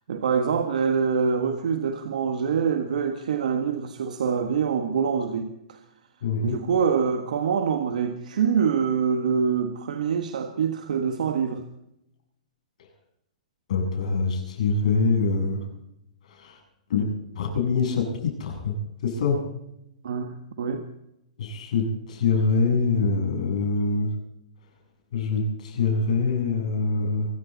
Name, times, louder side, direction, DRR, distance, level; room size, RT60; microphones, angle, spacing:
voice 1, 0.1-5.8 6.4-11.6 20.0-20.8, right 6 dB, 75° right, 7 dB, 1.5 m, -25 dB
voice 2, 6.2-6.6 13.7-15.7 16.3-16.6 16.9-17.1 17.3-18.7 19.0-19.4 21.4-24.1 25.1-27.3, left 4 dB, 65° left, 2 dB, 7.6 m, -24 dB
24.5 x 14.0 x 4.1 m, 0.83 s
hypercardioid pair, 140°, 4 cm